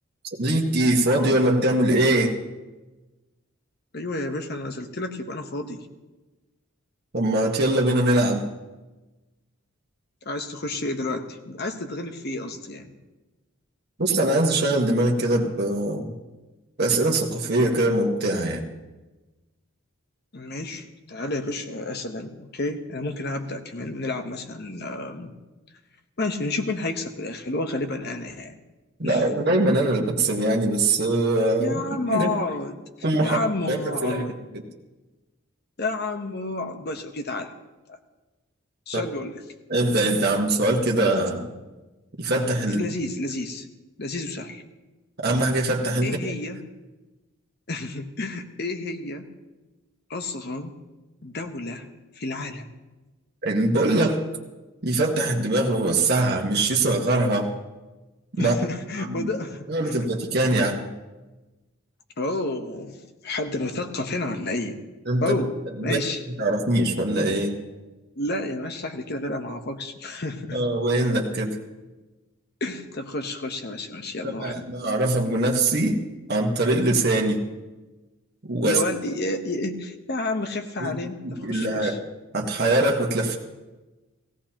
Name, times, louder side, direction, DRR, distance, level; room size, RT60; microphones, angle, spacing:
voice 1, 0.4-2.3 7.1-8.4 14.0-16.1 16.8-18.6 29.0-32.3 33.0-34.2 38.9-39.0 39.7-41.5 42.2-42.8 45.2-46.2 53.4-54.2 54.8-57.5 58.4-58.5 59.0-59.3 59.7-60.9 65.1-65.4 65.8-66.0 66.4-67.5 70.5-71.6 74.2-76.0 76.3-77.4 78.5-78.8 80.8-81.0 81.2-81.9 82.3-83.4, right 2 dB, 50° right, 0 dB, 1.4 m, -22 dB
voice 2, 3.9-5.9 10.2-12.9 20.3-25.3 26.2-28.6 29.0-29.2 31.6-32.8 33.2-34.4 35.8-37.5 37.9-38.0 38.9-39.4 42.7-43.7 44.0-44.6 46.0-46.7 47.7-49.3 50.1-50.7 51.2-51.9 52.2-52.7 58.3-60.1 60.6-60.7 62.2-64.8 65.2-65.5 65.8-66.2 68.2-70.6 72.6-74.7 78.6-82.0, left 2 dB, 50° left, 6 dB, 1.0 m, -30 dB
17.0 x 16.5 x 2.9 m, 1.1 s
head